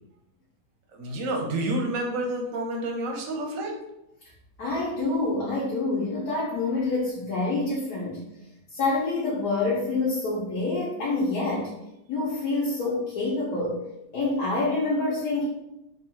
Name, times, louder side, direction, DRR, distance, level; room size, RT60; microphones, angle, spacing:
voice 1, 0.9-3.8, right 1 dB, 55° right, 1 dB, 1.0 m, -29 dB
voice 2, 4.6-8.2 8.7-11.7 12.1-13.8 14.1-15.5, left 3 dB, 60° left, -5 dB, 1.3 m, -27 dB
3.8 x 2.4 x 4.6 m, 0.86 s
omnidirectional pair, 2.1 m